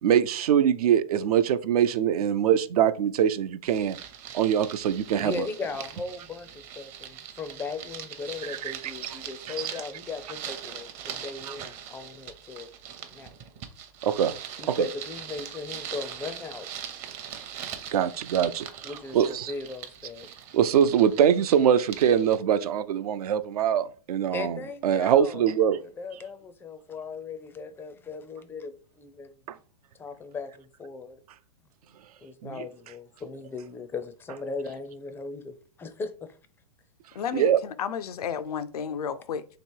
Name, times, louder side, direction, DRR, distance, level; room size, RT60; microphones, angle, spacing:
voice 1, 0.0-4.0 4.3-5.4 8.5-8.7 14.0-14.3 14.7-14.9 17.9-19.5 20.5-25.8 29.5-29.6 32.4-32.6 37.3-37.6, right 9 dB, 75° right, 0.4 m, -23 dB
sound 1, 3.6-22.4, right 9 dB, 35° right, 0.7 m, -41 dB
voice 2, 5.2-12.7 13.1-13.3 14.6-16.7 17.6-17.7 18.8-20.3 24.3-25.5 26.0-29.4 29.9-31.2 32.2-36.4, left 4 dB, 10° left, 0.4 m, -38 dB
voice 3, 37.1-39.5, left 7 dB, 80° left, 0.5 m, -32 dB
3.0 x 2.9 x 4.4 m
hypercardioid pair, 130°, 19 cm